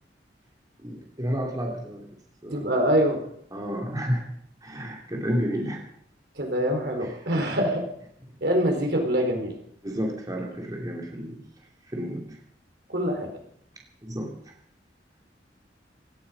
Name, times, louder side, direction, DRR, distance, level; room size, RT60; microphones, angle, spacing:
voice 1, 0.8-2.7 3.5-4.3 4.6-5.8 7.0-7.5 8.3-8.4 9.8-11.4 11.9-12.4 14.0-14.5, equal, 20° right, 0 dB, 2.8 m, -31 dB
voice 2, 2.5-3.2 6.4-7.8 8.4-9.6 12.9-13.3, equal, 65° right, 2 dB, 4.4 m, -24 dB
18.0 x 14.5 x 5.4 m, 0.66 s
head